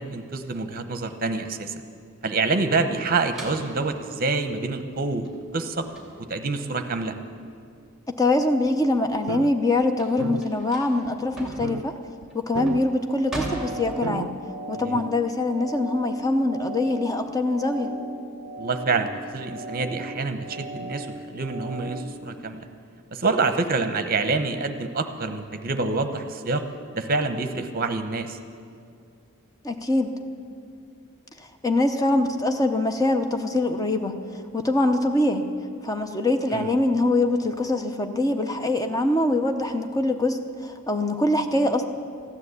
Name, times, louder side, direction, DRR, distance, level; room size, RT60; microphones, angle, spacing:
voice 1, 0.0-1.7 2.2-5.8 6.3-7.1 14.7-15.0 18.6-22.7 23.1-26.6 26.9-28.4 36.5-36.7, right 3 dB, 40° right, 9 dB, 0.9 m, -27 dB
sound 1, 3.3-8.4 8.8-14.4, right 1 dB, ahead, 2.4 m, -39 dB
voice 2, 8.1-12.0 12.3-14.3 14.7-17.9 29.6-30.1 31.6-34.2 34.5-35.4 35.8-41.8, left 2 dB, 15° left, 6 dB, 0.7 m, -23 dB
sound 2, 8.7-8.8 9.1-9.5 9.8-9.9 10.2-10.4 11.1-11.2 11.6-11.8 12.2-12.3 12.5-12.8 13.4-13.5 14.0-14.3 14.9-15.0, right 5 dB, 75° right, 0.4 m, -32 dB
sound 3, 13.1-22.0, right 2 dB, 25° right, 1.2 m, -38 dB
14.5 x 10.5 x 8.2 m, 2.4 s
head